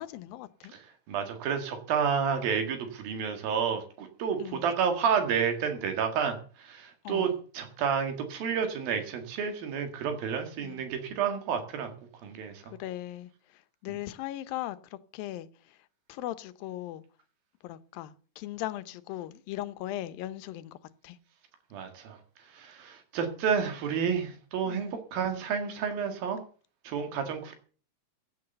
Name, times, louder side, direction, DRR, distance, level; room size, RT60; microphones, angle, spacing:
voice 1, 0.0-0.7 4.4-4.6 7.0-7.4 10.6-10.8 12.8-13.3 13.8-15.5 16.1-17.0 17.6-20.8 21.0-21.2 24.7-25.0, left 14 dB, 85° left, 2.6 m, -38 dB
voice 2, 0.7-11.9 12.2-12.7 21.7-26.4 26.8-27.6, right 7 dB, 85° right, 3.7 m, -30 dB
15.5 x 8.5 x 6.7 m
omnidirectional pair, 4.1 m